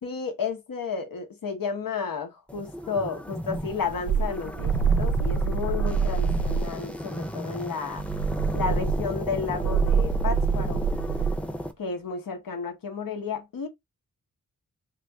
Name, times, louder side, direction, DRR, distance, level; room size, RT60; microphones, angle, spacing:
voice 1, 0.0-8.0 8.5-10.8 11.8-13.7, left 5 dB, 90° left, 1.0 m, -32 dB
sound 1, 2.5-11.7, equal, 5° left, 0.5 m, -34 dB
sound 2, 3.5-6.7 7.9-11.4, right 6 dB, 65° right, 0.6 m, -26 dB
3.0 x 2.5 x 3.4 m
wide cardioid pair, 75°, 33 cm